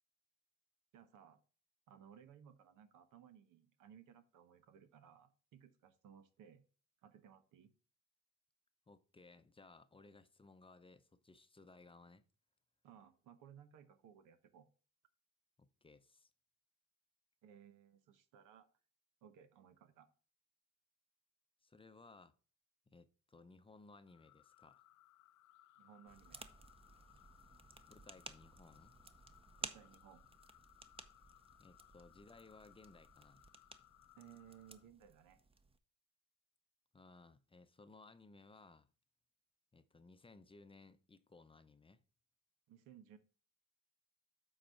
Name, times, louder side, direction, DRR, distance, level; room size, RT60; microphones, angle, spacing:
voice 1, 0.9-1.4 1.9-6.6 7.0-7.7 12.8-14.7 17.4-18.7 19.2-20.1 25.8-26.5 29.6-30.3 34.2-35.4 42.7-43.2, right 9 dB, 90° right, 1.0 m, -61 dB
voice 2, 8.9-12.2 15.6-16.3 21.6-22.3 22.9-24.8 27.9-28.9 31.6-33.4 36.9-38.9 39.7-42.0, left 3 dB, 20° left, 0.6 m, -61 dB
sound 1, 24.0-34.9, left 15 dB, 80° left, 0.5 m, -66 dB
sound 2, 26.1-35.8, right 3 dB, 20° right, 0.7 m, -55 dB
7.8 x 4.0 x 5.8 m
cardioid pair, 90°, 30 cm